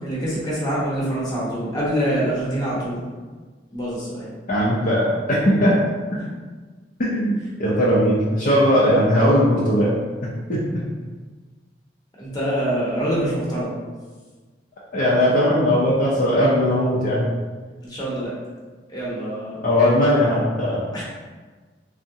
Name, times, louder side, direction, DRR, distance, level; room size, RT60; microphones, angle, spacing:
voice 1, 0.0-3.0 3.7-4.3 12.2-13.7 17.8-18.3 18.9-19.7 20.9-21.0, right 1 dB, 25° left, -7 dB, 0.9 m, -25 dB
voice 2, 4.5-5.8 7.0-9.9 10.5-10.6 14.9-17.3 19.6-20.8, equal, 50° left, -7 dB, 0.5 m, -18 dB
3.5 x 2.1 x 2.7 m, 1.4 s
head